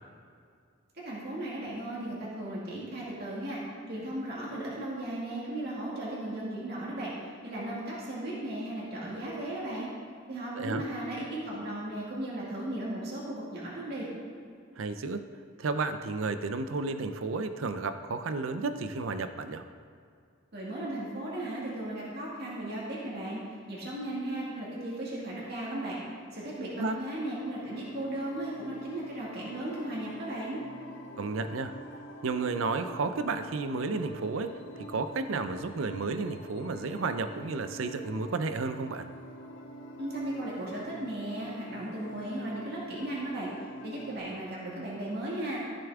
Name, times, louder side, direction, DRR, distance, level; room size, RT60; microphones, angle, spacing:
voice 1, 0.9-3.6 3.9-7.1 7.4-9.9 10.3-14.1 20.5-23.4 23.7-26.0 26.3-30.6 40.0-43.5 43.8-45.6, right 1 dB, 55° right, -6 dB, 2.1 m, -36 dB
voice 2, 14.8-15.3 15.6-19.6 26.8-27.0 31.2-31.8 32.2-34.6 34.9-39.1, right 3 dB, 75° right, 10 dB, 0.5 m, -32 dB
sound 1, 27.3-44.2, equal, 65° left, 1.2 m, -46 dB
14.0 x 6.9 x 3.6 m, 2.3 s
head